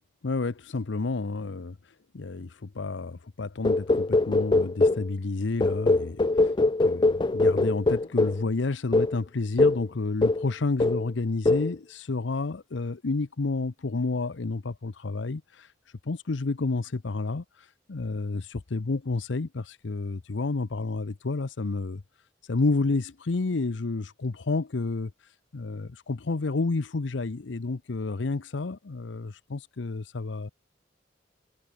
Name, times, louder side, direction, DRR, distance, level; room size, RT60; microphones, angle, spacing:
voice 1, 0.2-6.5 6.8-15.7 16.0-22.0 22.4-30.5, left 3 dB, 75° left, 0.7 m, -30 dB
sound 1, 3.6-5.1 5.6-8.4 8.9-9.2 9.6-9.9 10.2-10.5 10.8-11.1 11.5-11.7, left 2 dB, 25° left, 0.4 m, -22 dB
head